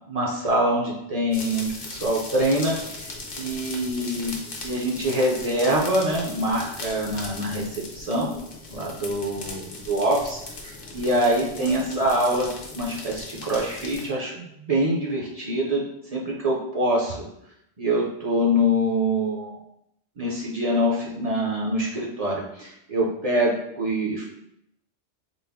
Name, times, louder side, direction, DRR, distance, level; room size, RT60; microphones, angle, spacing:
voice 1, 0.1-3.1 3.4-4.3 4.6-7.7 7.9-8.3 8.7-15.8 16.1-17.2 17.8-19.6 20.2-24.2, equal, 45° right, -3 dB, 0.5 m, -25 dB
sound 1, 1.3-14.1, left 3 dB, 55° left, 0.8 m, -38 dB
4.0 x 2.0 x 3.4 m, 0.79 s
omnidirectional pair, 1.2 m